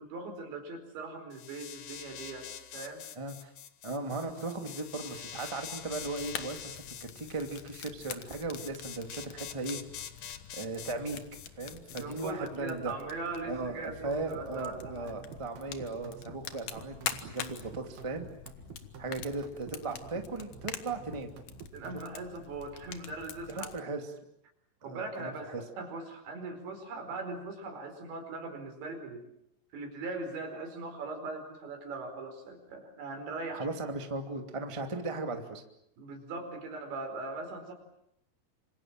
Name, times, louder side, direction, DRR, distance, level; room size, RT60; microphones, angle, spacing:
voice 1, 0.0-3.0 11.9-15.1 19.1-19.2 21.7-23.7 24.8-29.3 29.7-33.7 36.0-37.7, right 3 dB, 85° right, 5 dB, 6.9 m, -40 dB
sound 1, 1.3-12.3, left 9 dB, 80° left, 1.5 m, -45 dB
voice 2, 3.1-3.5 3.8-9.8 10.5-11.2 11.6-12.9 13.4-18.3 19.0-21.3 23.5-24.0 24.8-25.6 33.5-35.6, right 3 dB, 10° right, 5 dB, 1.4 m, -37 dB
Fire, 5.8-23.8, left 9 dB, 60° left, 2.3 m, -45 dB
sound 2, 14.3-22.1, right 6 dB, 60° right, 4.2 m, -49 dB
27.0 x 26.5 x 7.6 m, 0.78 s
omnidirectional pair, 5.0 m